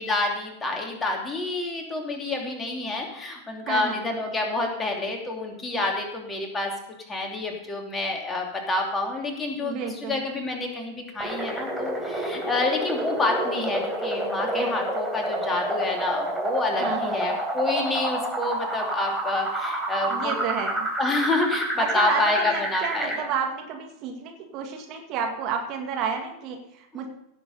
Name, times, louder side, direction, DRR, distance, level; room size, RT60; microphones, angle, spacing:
voice 1, 0.0-6.7 7.1-20.3 21.0-23.3, left 2 dB, 15° left, 1 dB, 2.7 m, -28 dB
voice 2, 3.7-4.0 9.6-10.2 16.8-17.4 20.0-20.9 21.8-27.1, right 6 dB, 40° right, 3 dB, 1.9 m, -31 dB
sound 1, 11.2-23.2, right 1 dB, 5° right, 3.6 m, -29 dB
16.5 x 7.3 x 5.4 m, 0.81 s
figure-of-eight pair, 90°, 0 cm